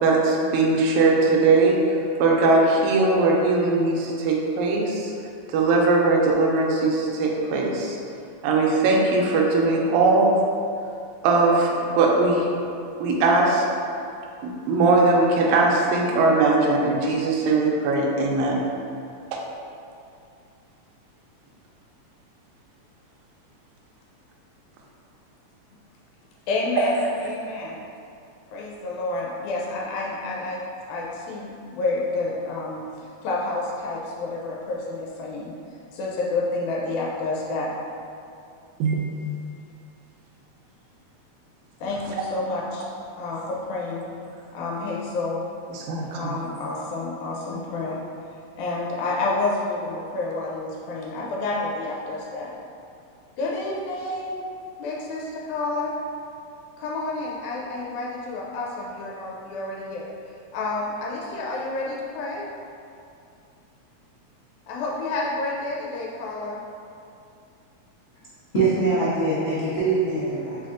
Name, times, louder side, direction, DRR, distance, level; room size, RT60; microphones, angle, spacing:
voice 1, 0.0-5.1 5.5-8.0 8.4-10.4 11.2-12.5 13.0-13.7 14.4-18.6 19.3-19.4 26.8-26.9 38.8-39.0 45.7-46.3, right 3 dB, 85° right, -1 dB, 1.9 m, -20 dB
voice 2, 26.5-27.8 28.5-32.8 33.2-35.5 35.9-37.7 41.8-42.9 43.2-44.1 44.5-45.4 46.1-48.0 48.6-52.5 53.4-54.4 54.8-55.9 56.8-60.1 60.5-62.4 64.7-66.6, left 2 dB, 85° left, -3 dB, 2.0 m, -29 dB
voice 3, 68.5-70.6, right 3 dB, 70° left, -16 dB, 0.6 m, -23 dB
4.6 x 4.2 x 2.4 m, 2.5 s
omnidirectional pair, 3.3 m